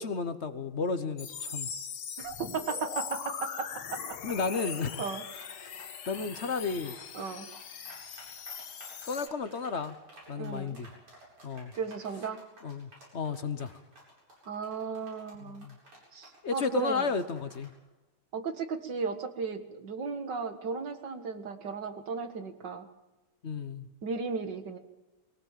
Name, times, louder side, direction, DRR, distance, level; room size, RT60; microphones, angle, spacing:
voice 1, 0.0-1.7 4.2-5.0 5.6-6.9 9.1-10.0 10.3-10.9 11.4-11.7 12.6-13.7 15.6-15.8 16.4-17.7 23.4-23.9, left 4 dB, 45° left, 11 dB, 1.0 m, -33 dB
sound 1, 1.2-9.3, left 7 dB, 70° left, 2.2 m, -41 dB
voice 2, 2.2-4.2 4.6-5.2 7.1-7.5 10.4-10.8 11.8-12.4 14.5-15.7 16.1-17.2 18.3-22.9 24.0-24.8, right 5 dB, 55° right, 8 dB, 2.3 m, -35 dB
sound 2, 4.9-17.8, right 1 dB, 85° right, 9.2 m, -53 dB
22.5 x 18.0 x 7.5 m, 1.1 s
omnidirectional pair, 2.4 m